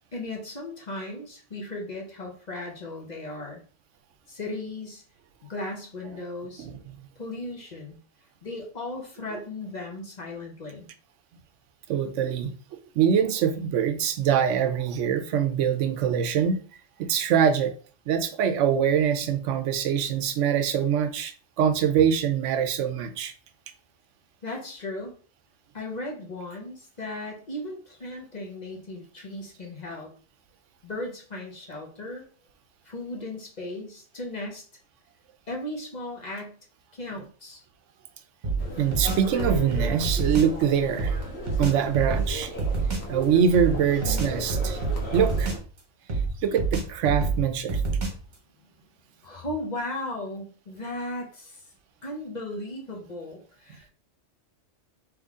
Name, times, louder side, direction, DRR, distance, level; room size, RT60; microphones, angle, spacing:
voice 1, 0.1-3.6 4.3-5.0 5.5-6.7 7.2-8.0 8.4-10.9 24.4-25.1 25.7-30.1 30.8-32.2 32.8-34.6 35.5-36.6 36.9-37.6 49.2-51.6 52.0-53.9, left 2 dB, 40° left, 0.9 m, -36 dB
voice 2, 11.9-16.6 17.0-17.7 18.1-23.3 38.8-41.2 41.6-42.5 43.1-44.8 45.1-45.5 46.4-47.8, right 8 dB, 85° right, 0.9 m, -24 dB
sound 1, 38.4-40.6 41.0-43.1 43.5-45.8 46.1-48.3, right 4 dB, 40° right, 1.1 m, -28 dB
sound 2, 38.6-45.6, equal, 60° left, 1.4 m, -36 dB
3.8 x 3.1 x 3.6 m
omnidirectional pair, 1.2 m